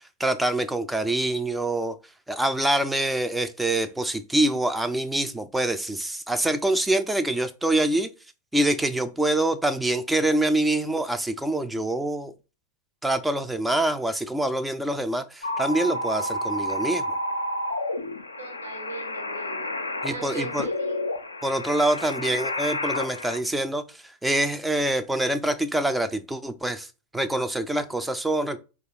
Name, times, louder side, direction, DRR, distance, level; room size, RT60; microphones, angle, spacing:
voice 1, 0.2-2.0 2.3-8.1 8.5-12.3 13.0-17.2 20.0-20.7 21.4-26.9 27.1-28.6, right 1 dB, 5° right, 0.4 m, -25 dB
sound 1, 15.4-23.4, left 1 dB, 80° left, 0.4 m, -30 dB
voice 2, 18.4-19.7 20.1-21.0 22.0-22.2, right 4 dB, 70° right, 1.2 m, -39 dB
4.6 x 2.4 x 3.0 m
figure-of-eight pair, 90°, 0 cm